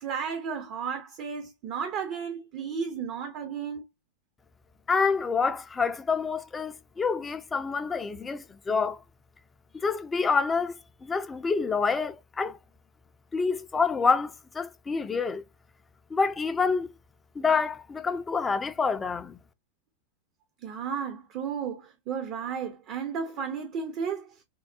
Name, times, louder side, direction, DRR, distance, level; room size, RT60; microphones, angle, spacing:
voice 1, 0.0-3.8 20.6-24.4, right 6 dB, 40° right, 0.5 m, -33 dB
voice 2, 4.9-9.0 9.7-10.8 11.0-12.6 13.3-15.4 16.1-16.9 17.4-19.4, left 5 dB, 15° left, 0.4 m, -27 dB
3.6 x 2.0 x 2.2 m
figure-of-eight pair, 90°, 0 cm